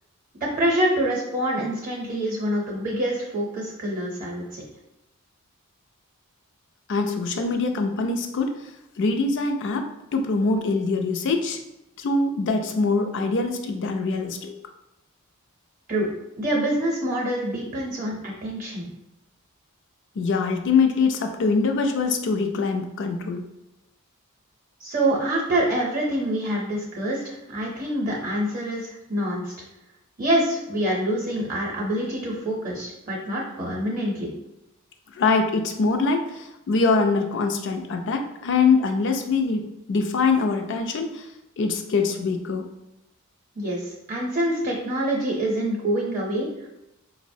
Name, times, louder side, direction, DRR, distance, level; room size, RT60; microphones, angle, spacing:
voice 1, 0.4-4.6 15.9-16.1 16.4-18.9 24.8-29.5 30.2-34.3 43.6-46.7, right 1 dB, 40° right, -2 dB, 0.6 m, -26 dB
voice 2, 6.9-8.7 9.0-11.6 12.0-14.5 20.2-23.4 35.1-41.2 41.6-42.7, left 4 dB, 55° left, 5 dB, 0.4 m, -23 dB
4.7 x 2.0 x 2.6 m, 0.89 s
head